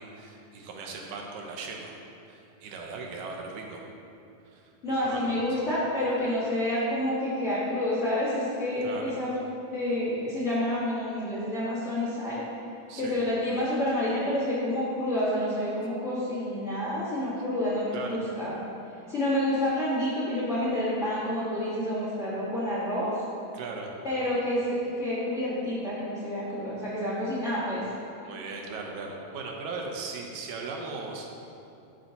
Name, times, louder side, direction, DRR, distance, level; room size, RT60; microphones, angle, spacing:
voice 1, 0.0-1.9 2.3-3.8 4.5-5.6 8.8-9.0 12.9-13.2 17.9-18.2 23.5-23.9 28.2-31.3, right 4 dB, 90° right, 1 dB, 2.1 m, -38 dB
voice 2, 4.8-9.3 9.7-12.4 12.9-18.5 19.1-23.2 24.0-27.8, left 1 dB, 40° left, -11 dB, 1.0 m, -28 dB
11.0 x 4.4 x 2.8 m, 2.7 s
omnidirectional pair, 3.3 m